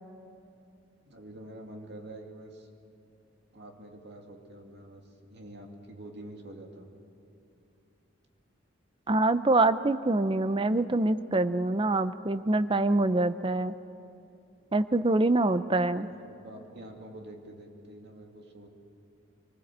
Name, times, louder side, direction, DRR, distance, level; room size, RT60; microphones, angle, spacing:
voice 1, 1.1-2.7 3.5-5.0 5.3-6.9 15.9-18.7, right 1 dB, 60° right, 2 dB, 2.4 m, -46 dB
voice 2, 9.1-13.7 14.7-16.1, right 2 dB, 25° right, 13 dB, 0.6 m, -25 dB
24.5 x 19.5 x 7.5 m, 2.7 s
head